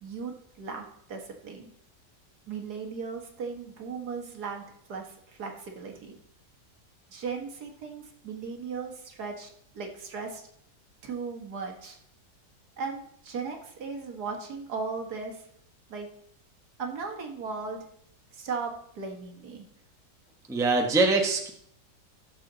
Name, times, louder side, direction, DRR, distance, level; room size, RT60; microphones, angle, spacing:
voice 1, 0.0-1.7 2.5-6.2 7.1-9.5 9.7-10.4 11.0-12.0 12.8-15.5 15.9-16.1 16.8-17.8 18.3-19.7, right 5 dB, 65° right, 3 dB, 1.9 m, -37 dB
voice 2, 20.5-21.5, right 3 dB, ahead, 2 dB, 0.8 m, -23 dB
14.0 x 6.8 x 3.9 m, 0.69 s
omnidirectional pair, 1.9 m